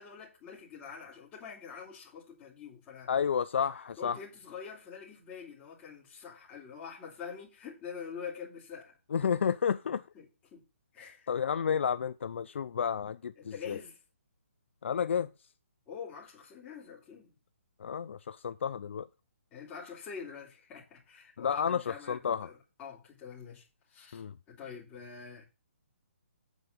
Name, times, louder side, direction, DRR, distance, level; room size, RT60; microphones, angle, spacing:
voice 1, 0.0-3.1 4.0-9.0 10.1-10.3 10.5-10.6 10.9-11.7 13.4-14.0 15.9-17.3 19.5-25.4, left 6 dB, 15° left, 3.2 m, -46 dB
voice 2, 3.1-4.2 9.1-10.0 11.3-13.8 14.8-15.3 17.8-19.1 21.4-22.5 24.1-24.3, left 7 dB, 60° left, 0.5 m, -31 dB
8.2 x 4.7 x 6.7 m
hypercardioid pair, 165°, 7 cm